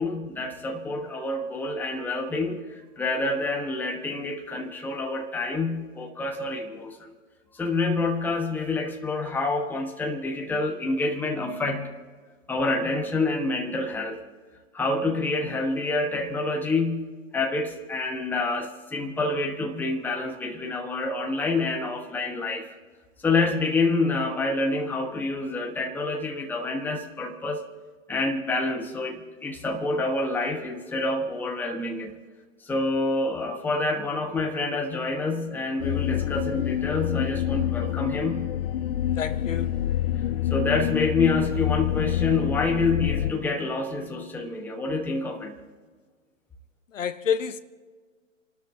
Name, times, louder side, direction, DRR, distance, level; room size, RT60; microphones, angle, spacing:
voice 1, 0.0-7.1 7.5-11.9 12.5-14.2 14.7-17.1 17.3-22.7 23.2-27.7 28.1-32.1 32.6-38.5 40.5-45.6, left 3 dB, 5° left, 1.3 m, -27 dB
sound 1, 35.8-43.3, left 11 dB, 50° left, 0.5 m, -27 dB
voice 2, 39.2-39.8 46.9-47.6, left 7 dB, 75° left, 1.2 m, -28 dB
30.0 x 12.5 x 2.8 m
hypercardioid pair, 135°, 39 cm